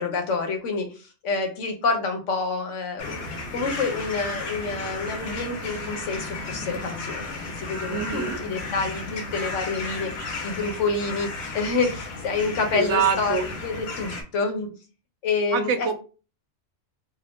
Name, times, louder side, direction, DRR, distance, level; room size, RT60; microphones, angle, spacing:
voice 1, 0.0-3.2 3.5-7.3 7.6-14.7 15.2-15.9, left 4 dB, 80° left, 4 dB, 1.1 m, -28 dB
sound 1, 3.0-14.2, left 3 dB, 60° left, 1.0 m, -34 dB
voice 2, 7.9-8.4 12.7-13.5 15.5-15.9, right 6 dB, 80° right, 8 dB, 0.9 m, -25 dB
2.5 x 2.5 x 3.4 m, 0.34 s
omnidirectional pair, 1.2 m